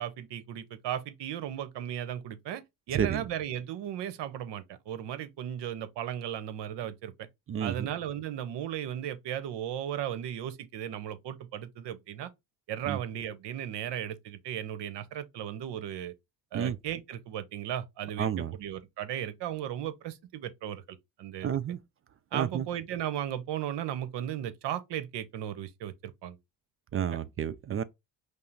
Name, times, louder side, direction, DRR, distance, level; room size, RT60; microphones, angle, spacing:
voice 1, 0.0-2.6 2.9-7.3 7.6-12.3 12.7-16.1 16.5-18.3 18.6-20.8 21.2-21.5 22.3-26.4 26.9-27.0, right 10 dB, 60° right, 0.8 m, -36 dB
voice 2, 2.9-3.2 7.5-7.9 12.8-13.0 16.5-16.8 18.2-18.5 21.4-21.8 22.3-22.7 26.9-27.8, right 8 dB, 30° right, 0.4 m, -30 dB
5.4 x 2.0 x 3.9 m
hypercardioid pair, 65°, 48 cm